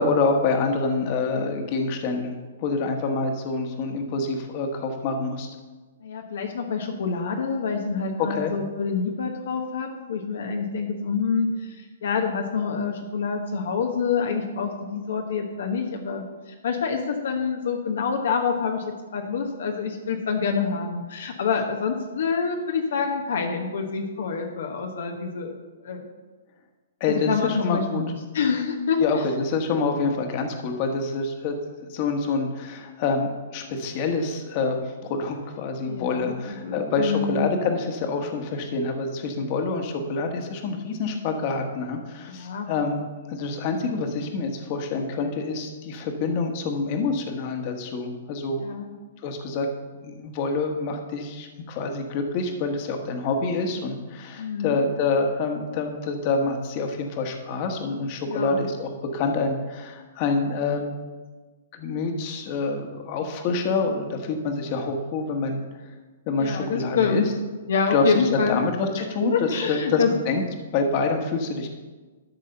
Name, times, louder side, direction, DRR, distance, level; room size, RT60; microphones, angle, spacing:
voice 1, 0.0-2.3 2.6-5.5 8.2-8.5 27.0-28.0 29.0-31.6 31.9-43.0 43.3-48.6 49.2-49.7 50.0-61.0 61.7-65.6 66.3-67.2 67.9-70.4 70.7-71.7, left 3 dB, 40° left, 4 dB, 1.3 m, -26 dB
voice 2, 6.0-26.1 27.0-29.0 35.8-37.5 42.3-42.7 48.6-48.9 54.4-54.8 58.2-58.7 66.4-67.3 67.7-68.6 69.3-70.1, left 5 dB, 70° left, 3 dB, 1.0 m, -27 dB
12.0 x 4.1 x 6.7 m, 1.3 s
hypercardioid pair, 135°, 0 cm